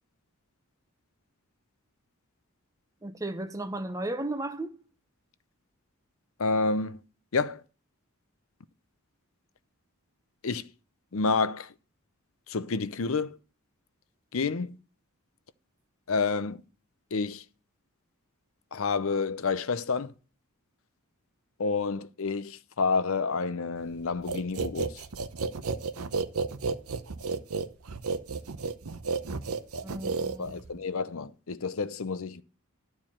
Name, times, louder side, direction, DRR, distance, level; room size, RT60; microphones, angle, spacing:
voice 1, 3.0-4.7 29.8-30.6, right 2 dB, 15° right, 0.8 m, -35 dB
voice 2, 6.4-7.0 7.3-7.6 10.4-10.7 11.1-11.7 12.5-13.4 14.3-14.8 16.1-16.6 17.1-17.4 18.7-20.1 21.6-25.0 30.4-32.4, left 4 dB, 60° left, 0.6 m, -29 dB
sound 1, 24.3-30.8, right 4 dB, 75° right, 0.8 m, -32 dB
12.0 x 4.7 x 7.3 m
head